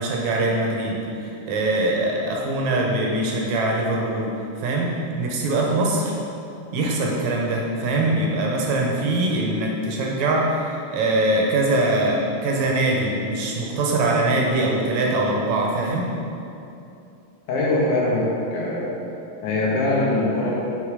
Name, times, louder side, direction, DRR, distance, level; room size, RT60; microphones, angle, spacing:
voice 1, 0.0-4.3 4.6-6.2 6.7-16.1, right 2 dB, 75° right, -2 dB, 2.1 m, -22 dB
voice 2, 17.5-19.0 19.4-20.5, left 2 dB, 85° left, -5 dB, 3.0 m, -22 dB
6.4 x 5.3 x 4.9 m, 2.7 s
omnidirectional pair, 3.5 m